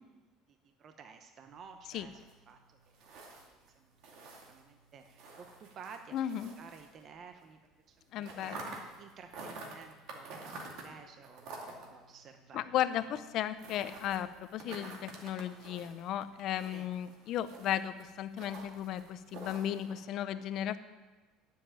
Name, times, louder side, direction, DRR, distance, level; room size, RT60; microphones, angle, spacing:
voice 1, 0.5-3.9 4.2-6.3 6.6-7.6 7.9-8.6 9.0-13.0 16.7-16.9, right 6 dB, 35° right, 6 dB, 0.8 m, -53 dB
sound 1, 1.4-7.5 7.7-20.0, right 3 dB, 60° right, 2.3 m, -50 dB
voice 2, 6.1-6.5 8.1-8.7 12.5-20.8, left 11 dB, 50° left, 12 dB, 0.6 m, -35 dB
10.0 x 7.4 x 8.8 m, 1.2 s
cardioid pair, 150°, 0 cm